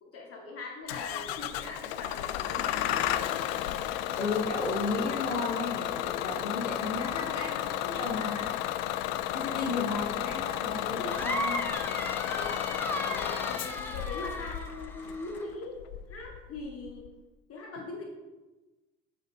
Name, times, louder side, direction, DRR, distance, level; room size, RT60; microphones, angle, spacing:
voice 1, 0.0-3.2 9.3-9.7 12.2-12.7 13.1-15.8 16.1-17.1 17.5-18.0, left 3 dB, 40° left, 0 dB, 2.1 m, -41 dB
Bus / Engine starting, 0.9-17.1, left 12 dB, 60° left, 0.5 m, -33 dB
voice 2, 4.2-8.6 9.3-11.7, left 3 dB, 80° left, -1 dB, 1.0 m, -34 dB
sound 1, 11.1-15.5, left 1 dB, 5° left, 1.0 m, -36 dB
7.4 x 5.0 x 4.2 m, 1.1 s
figure-of-eight pair, 55°, 35 cm